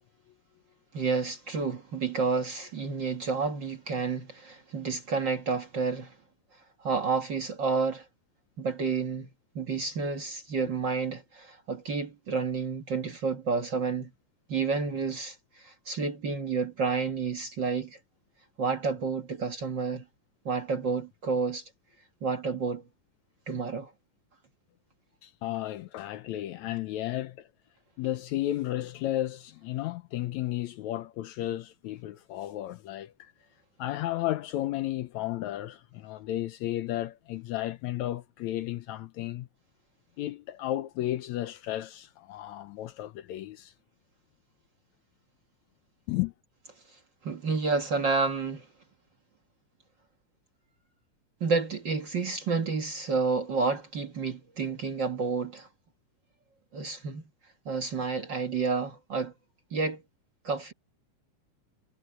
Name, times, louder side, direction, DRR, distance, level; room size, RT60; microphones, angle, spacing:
voice 1, 0.9-6.1 6.8-8.1 8.6-9.3 9.6-14.1 14.5-18.0 18.6-20.0 20.5-21.6 22.2-22.8 23.5-23.9 47.2-48.7 51.4-55.7 56.7-57.2 57.7-59.3 59.7-60.0 60.4-60.7, right 4 dB, 45° right, 1.7 m, -30 dB
voice 2, 25.2-27.5 28.0-33.3 33.8-39.5 40.2-43.7 46.1-46.3, left 14 dB, 75° left, 1.9 m, -33 dB
omnidirectional pair, 3.6 m